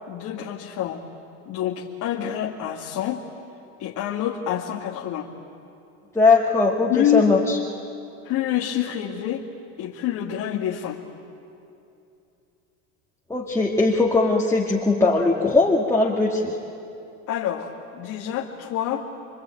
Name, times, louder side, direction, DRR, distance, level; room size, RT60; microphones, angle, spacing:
voice 1, 0.1-1.0 1.5-3.2 3.8-5.3 6.9-7.3 8.2-9.5 9.8-11.0 17.3-19.1, left 11 dB, 55° left, -2 dB, 2.2 m, -27 dB
voice 2, 6.2-7.6 13.3-16.5, left 3 dB, 10° left, -3 dB, 2.2 m, -20 dB
27.0 x 24.5 x 9.0 m, 2.7 s
supercardioid pair, 115°, 36 cm